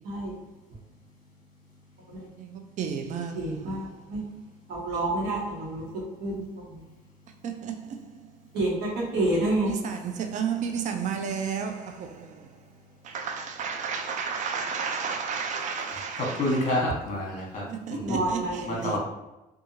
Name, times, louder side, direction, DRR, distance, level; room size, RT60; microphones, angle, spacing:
voice 1, 2.8-3.6 7.4-7.7 9.7-12.4 13.0-16.4 17.7-19.0, right 6 dB, 45° right, 0.4 m, -32 dB
voice 2, 3.3-3.8 4.1-4.2 4.7-5.8 6.2-6.3 8.5-9.8 18.0-18.7, right 2 dB, 75° right, 1.1 m, -28 dB
voice 3, 15.9-17.6 17.9-18.2 18.6-19.0, left 1 dB, 45° left, 1.1 m, -29 dB
2.8 x 2.3 x 2.7 m
cardioid pair, 110°, 17 cm